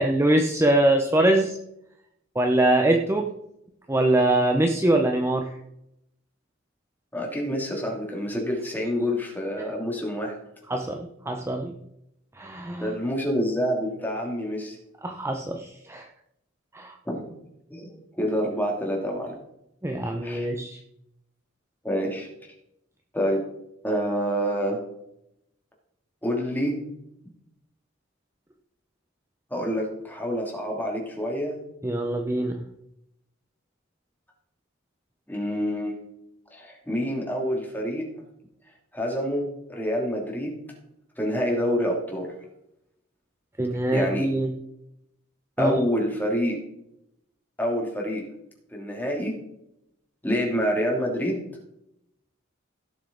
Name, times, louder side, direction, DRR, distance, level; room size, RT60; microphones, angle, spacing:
voice 1, 0.0-1.6 2.3-3.3 3.9-5.5 10.7-11.8 12.4-12.9 15.0-16.1 16.7-17.0 19.8-20.8 31.8-32.6 43.6-44.5 45.6-45.8, right 1 dB, 15° right, 3 dB, 0.7 m, -23 dB
voice 2, 7.1-10.3 12.8-14.8 17.0-17.3 17.7-19.3 20.2-20.5 21.8-22.5 23.1-23.4 23.8-24.8 26.2-26.8 29.5-31.6 35.3-36.0 36.5-38.1 38.9-39.4 39.7-40.6 41.2-42.3 43.9-44.3 45.6-46.6 47.6-48.2 48.7-49.3 50.2-51.4, equal, 10° left, -1 dB, 2.9 m, -27 dB
16.5 x 7.1 x 3.9 m, 0.80 s
head